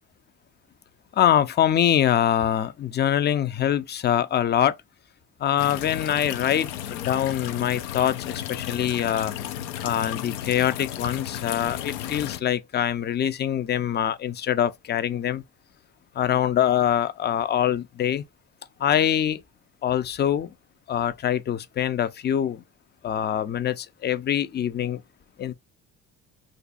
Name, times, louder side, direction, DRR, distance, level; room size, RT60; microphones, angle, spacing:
voice 1, 1.1-4.8 5.4-9.3 9.8-15.4 16.2-18.2 18.8-19.4 19.8-20.5 20.9-22.6 23.0-25.0 25.4-25.5, left 10 dB, 30° left, 0.4 m, -24 dB
sound 1, 5.6-12.4, left 11 dB, 85° left, 0.5 m, -34 dB
2.5 x 2.3 x 3.9 m
supercardioid pair, 65°, 41 cm